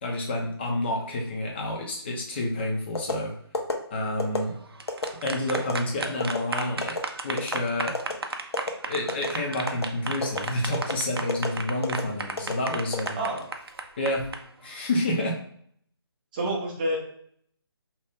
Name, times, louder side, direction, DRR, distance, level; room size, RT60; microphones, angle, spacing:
voice 1, 0.0-3.3 3.9-4.5 5.2-7.0 7.2-7.9 8.8-13.2 14.0-14.3 14.6-15.4, left 1 dB, 25° left, 0 dB, 0.7 m, -29 dB
sound 1, 2.9-3.2 3.5-3.7 4.2-4.4 4.9-5.1 5.5-5.7 6.2-6.4 6.8-7.0 7.4-7.6 7.9-8.1 8.5-8.7 9.1-9.3 9.7-9.9 10.2-10.4 10.7-10.9 11.3-11.5 11.8-12.0 12.4-12.5 12.9-13.6 14.0-14.3, left 4 dB, 70° left, 0.7 m, -29 dB
sound 2, 4.6-14.4, right 3 dB, 65° right, 0.5 m, -33 dB
voice 2, 16.3-17.0, right 1 dB, 20° right, -2 dB, 0.7 m, -28 dB
2.8 x 2.4 x 3.5 m, 0.64 s
figure-of-eight pair, 150°, 14 cm